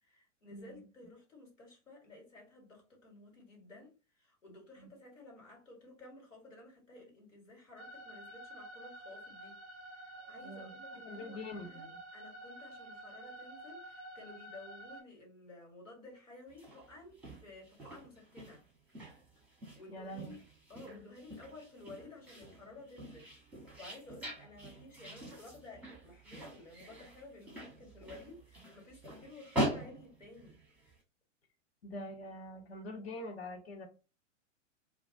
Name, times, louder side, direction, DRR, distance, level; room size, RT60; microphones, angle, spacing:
voice 1, 0.0-9.6 10.0-18.6 19.7-20.4 20.7-30.6, left 2 dB, 75° left, 1.5 m, -54 dB
sound 1, 7.8-15.0, right 1 dB, 25° right, 0.5 m, -50 dB
voice 2, 10.2-10.7 11.0-12.0 19.9-20.3 20.9-21.0 31.8-33.9, left 1 dB, 55° left, 0.9 m, -45 dB
sound 2, 16.5-31.0, right 1 dB, 5° right, 0.8 m, -43 dB
2.3 x 2.3 x 2.5 m
figure-of-eight pair, 100°, 38 cm